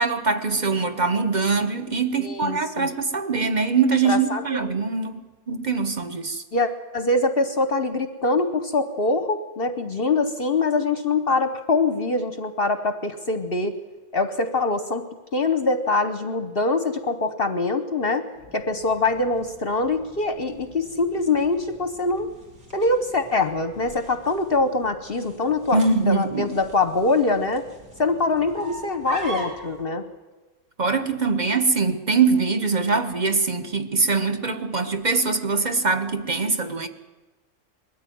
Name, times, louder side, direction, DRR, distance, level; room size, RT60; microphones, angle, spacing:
voice 1, 0.0-5.2 5.5-6.4 25.7-26.5 30.8-36.9, right 4 dB, 30° right, 8 dB, 1.1 m, -23 dB
voice 2, 2.2-2.9 4.0-4.5 6.5-13.8 14.1-15.0 15.3-18.3 18.5-22.3 22.7-27.7 28.0-30.0, left 3 dB, 45° left, 9 dB, 1.0 m, -24 dB
sound 1, 18.3-29.8, right 2 dB, 65° right, 3.8 m, -43 dB
21.0 x 14.0 x 9.3 m, 1.2 s
omnidirectional pair, 1.6 m